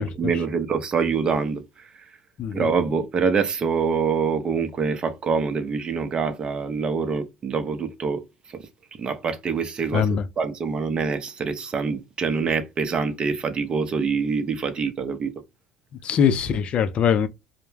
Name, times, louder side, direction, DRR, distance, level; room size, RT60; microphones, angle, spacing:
voice 1, 0.0-1.6 2.5-8.2 9.0-10.1 10.4-15.3, right 5 dB, 40° right, 0.6 m, -25 dB
voice 2, 9.9-10.2 16.0-17.3, left 7 dB, 50° left, 0.4 m, -22 dB
2.1 x 2.1 x 3.2 m
supercardioid pair, 80°, 2 cm